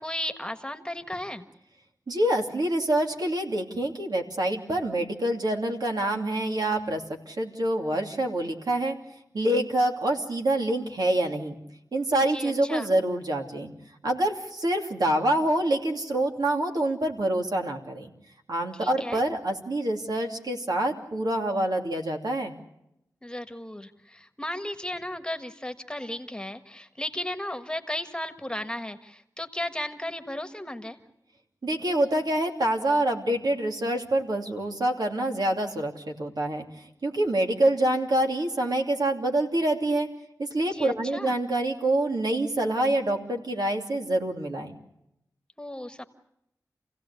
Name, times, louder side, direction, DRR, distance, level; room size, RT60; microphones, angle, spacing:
voice 1, 0.0-1.5 12.3-12.9 18.7-19.2 23.2-31.0 40.7-41.3 45.6-46.0, left 1 dB, 15° left, 8 dB, 1.5 m, -35 dB
voice 2, 2.1-8.9 9.3-11.5 11.9-13.7 14.0-18.1 18.5-22.6 31.6-40.1 40.4-44.8, right 1 dB, 75° right, 2 dB, 2.8 m, -26 dB
29.0 x 16.5 x 8.4 m, 0.82 s
wide cardioid pair, 70°, 7 cm